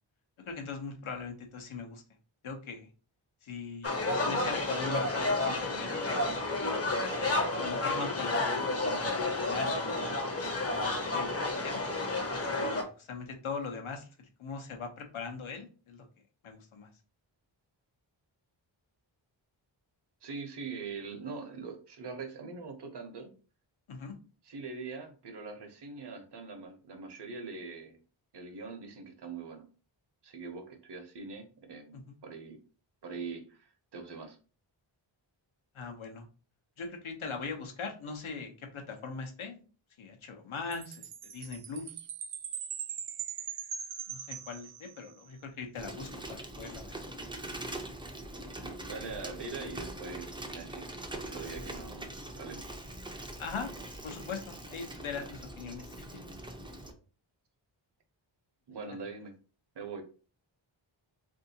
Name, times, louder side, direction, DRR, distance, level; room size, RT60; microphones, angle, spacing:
voice 1, 0.5-2.0 2.4-2.9 3.4-6.1 7.6-9.8 10.6-11.3 11.6-11.8 12.7-16.1 16.4-16.9 23.9-24.2 31.9-32.1 35.7-36.3 36.8-39.6 40.0-41.9 44.1-46.9 53.4-53.7 54.0-55.9 58.9-59.0, left 5 dB, 80° left, 3 dB, 0.9 m, -41 dB
sound 1, 3.8-12.8, left 2 dB, 30° left, 0.7 m, -31 dB
voice 2, 20.2-23.3 24.4-28.0 28.3-29.7 30.2-32.6 33.0-34.4 48.6-52.6 58.7-59.3 59.7-60.0, right 4 dB, 55° right, 5 dB, 0.8 m, -43 dB
Chime, 40.7-45.2, right 8 dB, 85° right, 0.6 m, -41 dB
Bicycle, 45.8-56.9, right 1 dB, 10° right, 0.4 m, -43 dB
3.5 x 2.7 x 2.7 m, 0.37 s
wide cardioid pair, 120°, 48 cm